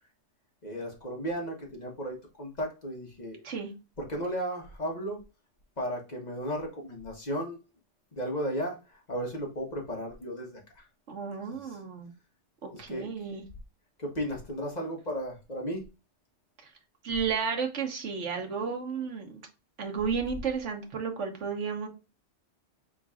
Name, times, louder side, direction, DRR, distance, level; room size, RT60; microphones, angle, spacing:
voice 1, 0.6-3.4 4.0-5.2 5.8-7.6 8.1-10.8 11.5-11.8 12.7-13.1 14.0-15.8, equal, 35° left, 0 dB, 1.5 m, -35 dB
voice 2, 11.1-12.1 12.6-13.4 17.0-19.4 19.8-21.9, right 6 dB, 80° right, 2 dB, 1.4 m, -32 dB
4.9 x 3.8 x 2.4 m, 0.29 s
omnidirectional pair, 1.2 m